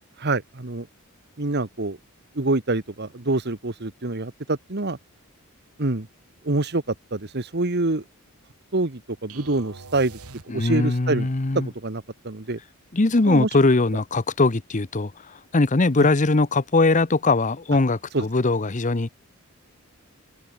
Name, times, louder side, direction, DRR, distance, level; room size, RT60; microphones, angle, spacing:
voice 1, 0.2-0.9 1.4-2.0 2.3-5.0 5.8-6.1 6.4-8.0 8.7-10.2 10.5-11.3 11.5-12.6 13.3-13.5 16.0-16.1 18.1-18.2, right 2 dB, 50° right, 1.4 m, -26 dB
sound 1, 9.3-11.0, right 4 dB, 80° right, 1.8 m, -44 dB
voice 2, 10.5-11.7 12.9-15.1 15.5-19.1, left 3 dB, 35° left, 0.8 m, -21 dB
head